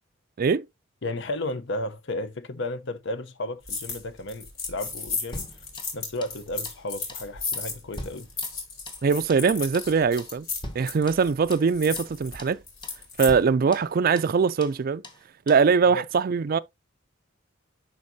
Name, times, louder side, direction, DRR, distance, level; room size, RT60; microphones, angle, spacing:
voice 1, 1.0-5.5 5.9-8.3 15.9-16.0, left 1 dB, 65° left, 0.8 m, -33 dB
sound 1, 3.7-4.0 4.3-13.3, left 4 dB, 90° left, 3.5 m, -34 dB
sound 2, 5.3-6.4 6.6-6.8 7.1-7.3 7.5-9.0 9.3-9.5 9.7-9.9 10.2-10.4 10.6-11.7 12.0-12.1 12.4-12.6 12.8-13.0 13.3-14.4 14.6-14.8 15.0-15.2 15.5-15.7, left 1 dB, 25° left, 1.1 m, -42 dB
voice 2, 9.0-10.5 10.7-12.6 13.2-15.0 15.5-16.6, right 5 dB, 45° right, 0.4 m, -22 dB
11.0 x 4.0 x 2.7 m
head